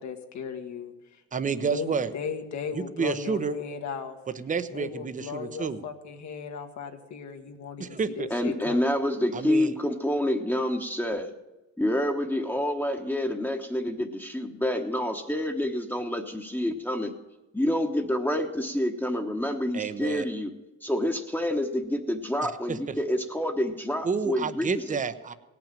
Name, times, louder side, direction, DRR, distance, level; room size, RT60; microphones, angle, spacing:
voice 1, 0.0-1.2 1.7-4.2 4.7-8.8, left 6 dB, 70° left, 5 dB, 1.5 m, -36 dB
voice 2, 1.3-2.1 2.7-3.6 4.4-5.8 7.8-8.3 9.3-9.7 19.7-20.3 22.7-23.0 24.0-25.3, right 5 dB, 25° right, 12 dB, 0.7 m, -30 dB
voice 3, 8.3-11.3 11.8-17.1 17.5-20.5 20.8-25.0, left 1 dB, 5° left, 2 dB, 1.1 m, -28 dB
17.5 x 6.0 x 8.9 m, 1.1 s
cardioid pair, 90°, 30 cm